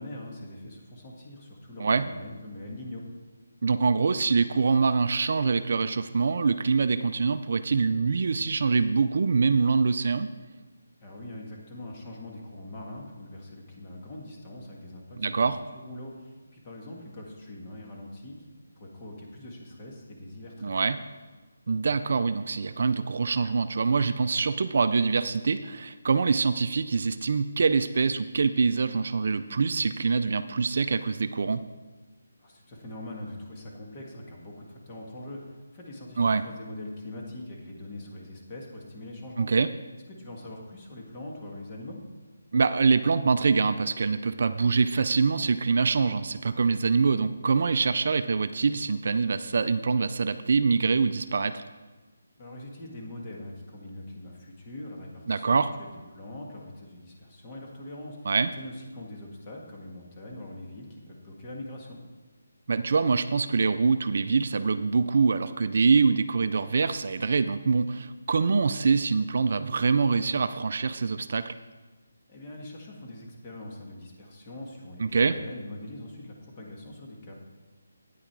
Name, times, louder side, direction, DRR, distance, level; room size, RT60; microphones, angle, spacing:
voice 1, 0.0-3.0 11.0-18.4 18.8-20.9 32.4-39.5 40.1-42.0 52.4-62.0 72.3-77.3, left 1 dB, 25° left, -1 dB, 1.8 m, -42 dB
voice 2, 3.6-10.3 15.2-15.6 20.6-21.0 21.7-31.6 36.2-36.4 39.4-39.7 42.5-51.6 55.3-55.7 58.3-58.5 62.7-71.5 75.0-75.3, right 4 dB, 55° right, 12 dB, 0.4 m, -24 dB
9.2 x 8.4 x 4.7 m, 1.3 s
hypercardioid pair, 165°, 0 cm